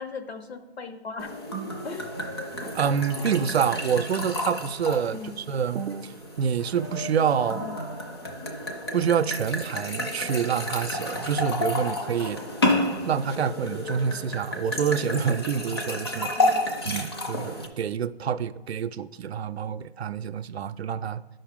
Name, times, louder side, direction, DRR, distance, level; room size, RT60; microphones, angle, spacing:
voice 1, 0.0-1.4 1.8-2.1 5.1-5.4 7.6-7.7 16.4-16.7, left 4 dB, 70° left, 1.1 m, -38 dB
sound 1, 1.2-17.7, left 1 dB, 25° left, 0.5 m, -31 dB
voice 2, 2.7-6.1 6.4-7.7 8.9-12.4 13.0-16.3 16.9-21.2, right 7 dB, 70° right, 0.5 m, -27 dB
11.5 x 5.5 x 3.6 m
hypercardioid pair, 165°, 33 cm